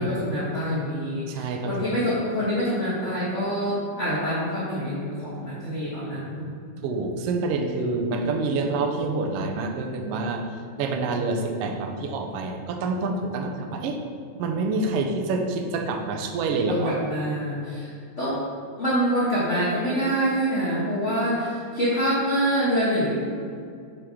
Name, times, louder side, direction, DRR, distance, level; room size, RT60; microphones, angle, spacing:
voice 1, 0.0-6.5 16.6-17.9 18.2-18.4 18.8-23.1, equal, 45° left, -9 dB, 0.9 m, -26 dB
voice 2, 1.3-1.7 6.8-10.4 10.8-14.0 14.4-16.9, right 3 dB, 75° right, 3 dB, 1.4 m, -27 dB
7.6 x 4.9 x 3.6 m, 2.3 s
omnidirectional pair, 3.3 m